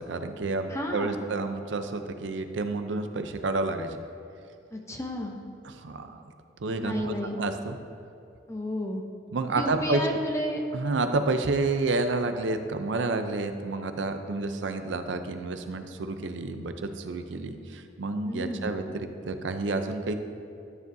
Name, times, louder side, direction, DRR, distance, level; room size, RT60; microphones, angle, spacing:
voice 1, 0.0-4.0 5.6-6.3 6.6-7.8 9.3-10.0 10.7-20.1, right 3 dB, 85° right, 8 dB, 0.6 m, -30 dB
voice 2, 0.7-1.2 4.7-5.3 6.8-7.4 8.5-9.0 9.5-10.6 18.2-18.7, left 1 dB, 15° left, 2 dB, 0.6 m, -32 dB
12.0 x 7.0 x 2.7 m, 2.6 s
head